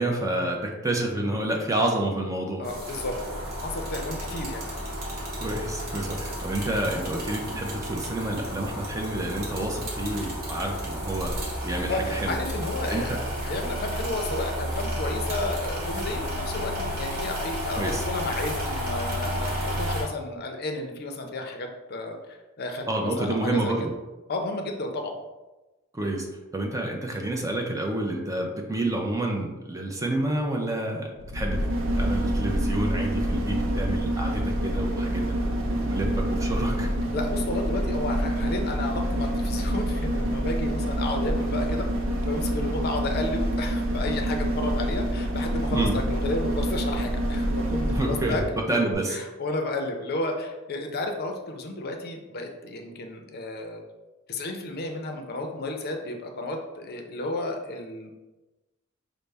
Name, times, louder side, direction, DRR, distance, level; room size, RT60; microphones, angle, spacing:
voice 1, 0.0-2.6 5.4-11.4 11.6-12.4 12.9-13.2 17.8-18.0 22.9-23.9 25.9-26.3 26.5-31.7 32.0-36.9 45.7-45.9 47.9-48.4 48.7-49.2, right 1 dB, 15° right, 1 dB, 0.5 m, -29 dB
voice 2, 2.6-4.6 11.9-23.7 24.3-25.2 37.1-41.9 42.3-48.6 49.1-53.8 54.3-58.1, left 2 dB, 50° left, 4 dB, 0.5 m, -32 dB
sound 1, 2.6-20.0, equal, 50° right, 1.1 m, -32 dB
sound 2, 31.2-48.6 48.9-49.0, right 1 dB, 70° right, 0.5 m, -27 dB
5.3 x 2.0 x 3.3 m, 1.1 s
head